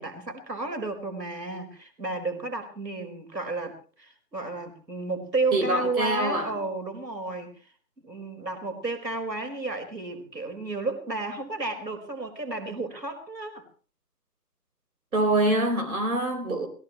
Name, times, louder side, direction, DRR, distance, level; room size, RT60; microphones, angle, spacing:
voice 1, 0.0-7.7 8.0-13.6, right 3 dB, 90° right, 4.7 m, -32 dB
voice 2, 5.5-6.5 15.1-16.7, right 1 dB, 60° right, 4.2 m, -25 dB
22.0 x 17.0 x 3.0 m
figure-of-eight pair, 155°, 49 cm